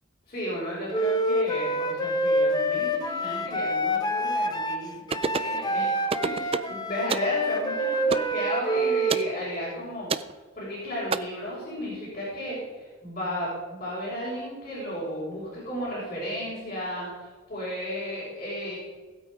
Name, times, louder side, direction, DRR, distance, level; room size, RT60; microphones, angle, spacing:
voice 1, 0.3-4.9 5.4-10.1 10.5-18.8, equal, 35° left, -8 dB, 5.4 m, -34 dB
Wind instrument woodwind instrument, 0.9-9.3, equal, 20° left, 1.0 m, -26 dB
sound 1, 5.1-5.6 6.1-6.7 7.1-7.3 8.1-8.3 9.1-9.3 10.1-10.3 11.1-11.2, right 4 dB, 30° right, 0.4 m, -28 dB
18.5 x 8.5 x 5.2 m, 1.4 s
head